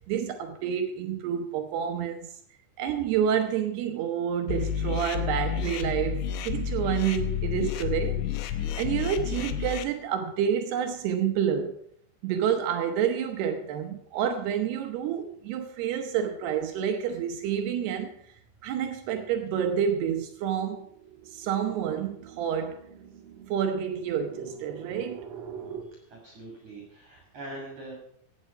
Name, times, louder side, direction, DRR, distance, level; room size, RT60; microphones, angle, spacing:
voice 1, 0.1-2.3 2.8-11.8 12.2-18.1 18.6-20.9 21.3-22.8 23.5-25.3, right 8 dB, 85° right, 6 dB, 2.3 m, -29 dB
sound 1, 4.5-9.8, left 9 dB, 75° left, 3.1 m, -30 dB
sound 2, 16.4-16.5 16.9-25.8, right 7 dB, 65° right, 2.3 m, -46 dB
voice 2, 25.9-28.0, right 1 dB, 45° right, 0 dB, 3.3 m, -43 dB
16.5 x 8.6 x 5.5 m, 0.68 s
omnidirectional pair, 6.0 m